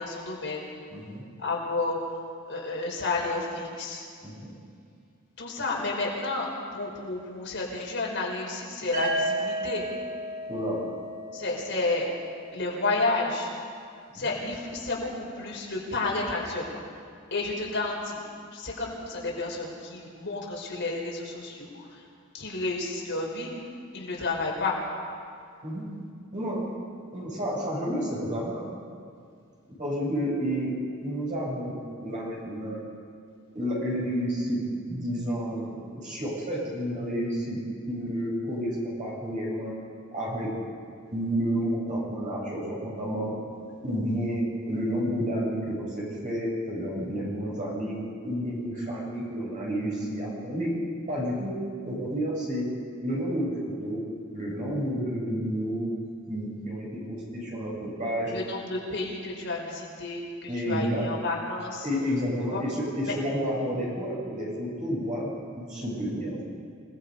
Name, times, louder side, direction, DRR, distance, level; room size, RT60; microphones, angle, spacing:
voice 1, 0.0-0.8 1.4-2.2 2.5-4.1 5.4-9.8 11.3-12.1 12.5-13.5 14.1-16.8 17.3-18.2 18.5-22.0 22.3-23.5 23.9-24.8 43.7-43.8 58.3-61.9 62.5-62.6 63.0-63.1, left 3 dB, 60° left, -2 dB, 5.0 m, -31 dB
voice 2, 0.9-1.2 4.2-4.5 10.5-10.9 14.2-14.3 25.6-25.8 26.3-26.6 27.1-28.7 29.8-30.7 31.0-32.8 33.5-34.6 34.9-37.6 37.9-39.7 40.1-40.5 41.1-43.3 43.8-48.0 48.2-50.7 51.1-51.5 51.9-52.7 53.0-54.0 54.3-55.9 56.3-58.3 60.5-61.0 61.8-65.3 65.6-66.4, equal, 40° right, -4 dB, 7.9 m, -30 dB
sound 1, 8.9-12.8, right 1 dB, 65° right, 6.0 m, -33 dB
28.5 x 18.5 x 5.5 m, 2.2 s
head